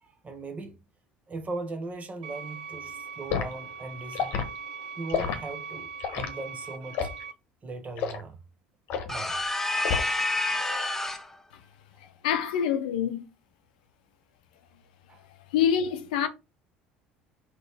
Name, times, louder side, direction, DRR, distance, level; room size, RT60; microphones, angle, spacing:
voice 1, 0.0-0.8 1.3-4.4 5.0-7.1 7.6-8.4 9.1-9.4 15.1-15.2, right 3 dB, 30° right, 1.1 m, -38 dB
sound 1, 2.2-7.3, right 5 dB, 80° right, 0.4 m, -41 dB
Liquid, 3.3-3.5 4.1-4.5 5.1-5.4 6.0-6.3 6.9-7.2 8.0-8.2 8.9-9.2 9.8-10.3 10.6-10.9, left 7 dB, 60° left, 0.9 m, -29 dB
sound 2, 9.1-11.3, left 2 dB, 10° left, 0.7 m, -28 dB
voice 2, 12.0-13.2 15.5-16.3, left 8 dB, 75° left, 0.5 m, -26 dB
3.9 x 3.0 x 3.4 m
hypercardioid pair, 65°, 4 cm